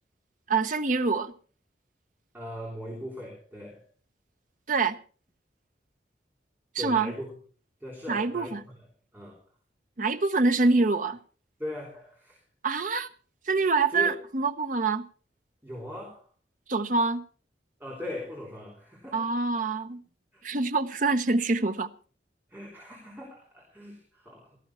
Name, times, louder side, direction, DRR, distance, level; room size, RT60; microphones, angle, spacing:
voice 1, 0.5-1.3 4.7-5.0 6.7-7.1 8.1-8.6 10.0-11.2 12.6-13.1 13.5-15.1 16.7-17.2 19.1-20.0 20.4-21.9, right 3 dB, 45° right, 0.8 m, -25 dB
voice 2, 2.3-3.8 6.8-7.3 7.8-8.7 9.1-9.4 11.6-12.4 13.9-14.1 15.6-16.3 17.8-19.3 20.3-20.4 22.5-24.6, left 1 dB, 10° right, 3.4 m, -39 dB
16.5 x 13.5 x 4.3 m
head